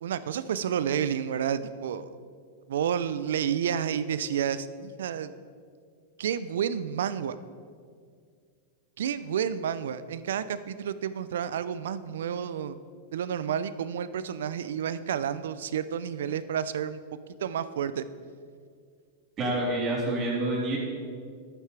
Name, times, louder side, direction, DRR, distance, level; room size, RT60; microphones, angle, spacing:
voice 1, 0.0-2.1 2.7-5.3 6.2-7.4 9.0-12.8 13.1-17.0 17.4-18.0, right 8 dB, 75° right, 14 dB, 0.4 m, -30 dB
voice 2, 19.4-20.8, right 1 dB, 30° right, -4 dB, 2.9 m, -27 dB
11.0 x 9.2 x 3.3 m, 2.1 s
hypercardioid pair, 110°, 0 cm